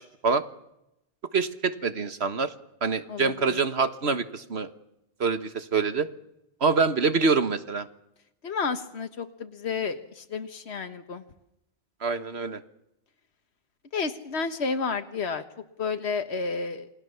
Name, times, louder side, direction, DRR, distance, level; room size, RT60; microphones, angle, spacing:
voice 1, 1.3-2.5 2.8-4.7 5.2-6.1 6.6-7.9 12.0-12.6, right 4 dB, 85° right, 11 dB, 1.8 m, -25 dB
voice 2, 3.1-3.6 8.4-11.2 13.9-15.4 15.8-16.9, left 5 dB, 90° left, 8 dB, 1.6 m, -31 dB
28.5 x 20.5 x 7.1 m, 0.84 s
omnidirectional pair, 1.1 m